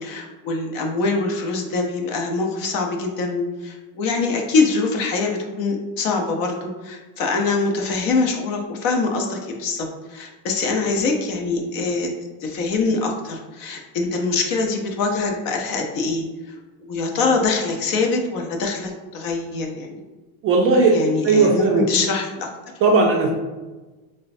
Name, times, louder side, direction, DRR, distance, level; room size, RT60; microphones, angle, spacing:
voice 1, 0.0-12.1 12.4-20.0 20.9-22.5, left 3 dB, 50° left, 2 dB, 0.7 m, -24 dB
voice 2, 20.4-21.0 21.2-21.8 22.8-23.3, right 3 dB, 30° right, 0 dB, 0.4 m, -16 dB
3.8 x 2.1 x 2.5 m, 1.2 s
hypercardioid pair, 95°, 45 cm